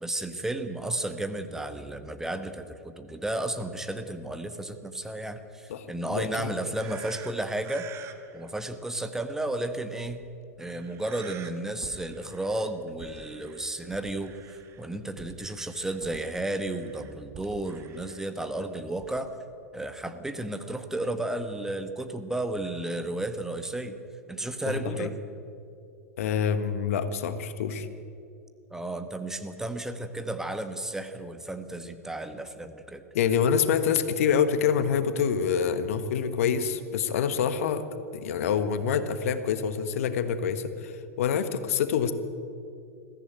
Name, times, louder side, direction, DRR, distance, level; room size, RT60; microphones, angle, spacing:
voice 1, 0.0-7.9 8.3-10.2 10.6-19.3 19.7-23.9 24.3-25.2 28.7-33.0, right 1 dB, 5° right, 8 dB, 1.4 m, -33 dB
voice 2, 5.7-6.5 24.7-25.1 26.2-27.9 33.1-37.8 38.1-42.1, left 7 dB, 60° left, 11 dB, 1.4 m, -26 dB
sound 1, 6.7-8.5 10.0-10.2 10.6-11.5 11.8-12.7 13.0-14.8 15.2-18.3 19.0-19.2, right 7 dB, 30° right, 1.7 m, -48 dB
21.5 x 15.0 x 9.1 m, 2.5 s
figure-of-eight pair, 90°, 9 cm